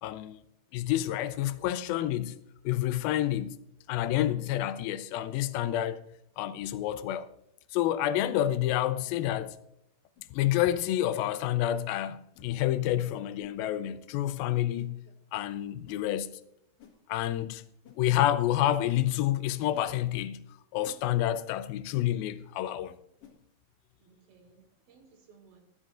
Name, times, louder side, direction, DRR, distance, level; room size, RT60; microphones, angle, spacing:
voice 1, 0.0-0.4 0.7-2.4 2.7-3.6 3.9-6.0 6.4-7.3 7.7-9.6 10.3-15.0 15.3-16.4 17.1-17.6 18.0-20.4 20.7-23.0, left 12 dB, 85° left, 2.4 m, -29 dB
sound 1, 10.1-10.3 11.2-11.4 12.3-12.5 13.4-13.6 14.7-14.9 15.9-16.1 16.8-17.0 17.8-18.0 18.8-19.0 19.7-19.9 20.8-21.0 22.0-22.1 23.2-23.4, left 8 dB, 50° left, 2.1 m, -55 dB
voice 2, 24.0-25.6, right 5 dB, 80° right, 3.9 m, -60 dB
21.0 x 13.5 x 2.5 m
omnidirectional pair, 4.3 m